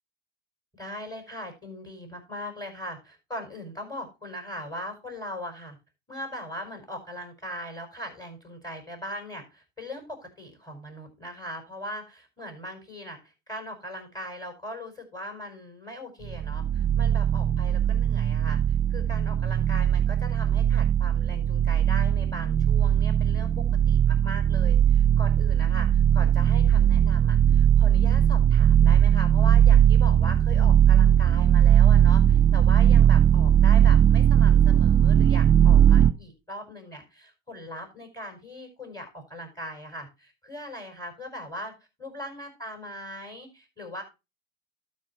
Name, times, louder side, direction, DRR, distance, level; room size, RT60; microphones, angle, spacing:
voice 1, 0.8-5.8 6.1-41.7 42.0-44.0, equal, 10° left, 3 dB, 5.0 m, -40 dB
sound 1, 16.2-36.1, right 10 dB, 30° right, 0.8 m, -19 dB
12.0 x 5.4 x 4.3 m, 0.26 s
hypercardioid pair, 75°, 37 cm